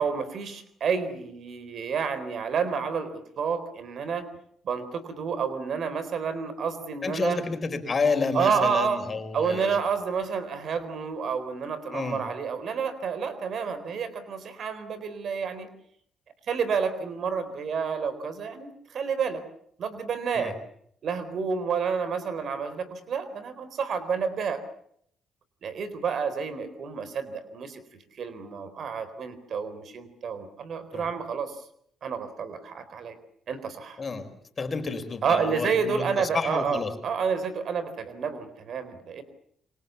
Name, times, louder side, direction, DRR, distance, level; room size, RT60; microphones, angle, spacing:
voice 1, 0.0-4.3 4.6-7.4 8.3-9.0 9.3-15.7 16.5-19.4 19.8-20.6 21.0-24.6 25.6-27.8 28.2-31.6 32.0-33.2 33.5-34.0 35.2-39.2, right 6 dB, 60° right, 13 dB, 4.0 m, -29 dB
voice 2, 7.0-9.8 11.9-12.2 20.3-20.5 30.9-31.1 34.0-34.3 34.6-36.9, left 4 dB, 35° left, 8 dB, 4.7 m, -30 dB
27.5 x 24.0 x 7.1 m, 0.67 s
cardioid pair, 90°, 0 cm